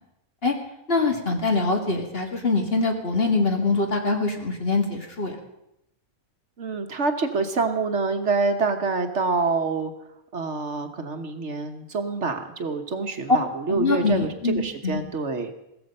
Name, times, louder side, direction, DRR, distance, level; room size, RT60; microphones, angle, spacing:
voice 1, 0.9-5.4 13.7-15.0, left 3 dB, 45° left, 3 dB, 2.3 m, -24 dB
voice 2, 6.6-9.9 10.3-15.5, right 4 dB, 55° right, 7 dB, 1.4 m, -26 dB
16.5 x 14.0 x 5.5 m, 0.84 s
omnidirectional pair, 1.5 m